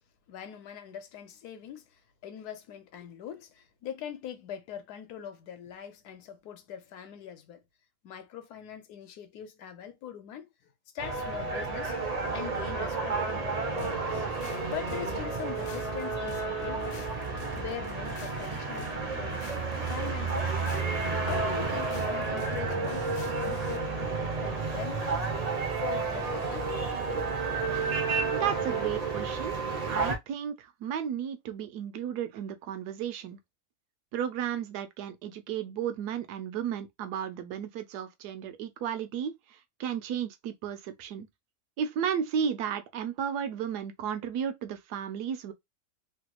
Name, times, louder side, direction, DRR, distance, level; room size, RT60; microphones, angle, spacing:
voice 1, 0.3-7.6 8.0-10.7 10.9-14.3 14.7-17.1 17.5-19.4 19.9-20.6 21.2-25.3 25.8-26.7, left 9 dB, 80° left, 1.2 m, -42 dB
sound 1, 11.0-30.2, right 4 dB, 65° right, 0.4 m, -31 dB
sound 2, 13.8-23.8, left 5 dB, 60° left, 0.8 m, -48 dB
voice 2, 28.3-29.6 29.9-33.4 34.1-41.3 41.8-45.5, right 8 dB, 80° right, 1.1 m, -34 dB
3.2 x 2.2 x 2.9 m
omnidirectional pair, 1.7 m